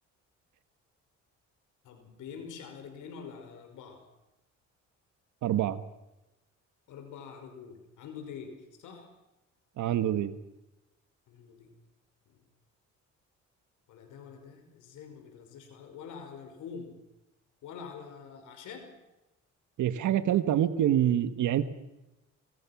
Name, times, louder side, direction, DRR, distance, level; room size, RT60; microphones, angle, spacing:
voice 1, 1.8-4.1 6.9-9.1 11.3-11.7 12.3-12.4 13.9-17.0 17.6-19.0, left 6 dB, 85° left, 5 dB, 5.6 m, -45 dB
voice 2, 5.4-5.8 9.8-10.3 19.8-21.7, right 11 dB, 75° right, 11 dB, 1.5 m, -26 dB
27.0 x 23.0 x 6.1 m, 0.96 s
cardioid pair, 90°, 30 cm